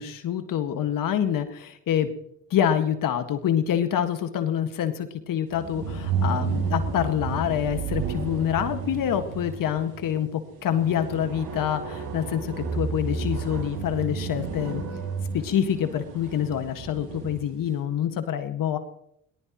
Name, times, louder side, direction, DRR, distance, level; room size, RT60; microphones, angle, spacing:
voice 1, 0.0-2.1 2.5-14.8 15.3-18.8, left 9 dB, 65° left, 8 dB, 1.9 m, -26 dB
sound 1, 5.5-17.5, right 5 dB, 70° right, 4.3 m, -32 dB
22.5 x 19.0 x 3.1 m, 0.75 s
supercardioid pair, 60°, 35 cm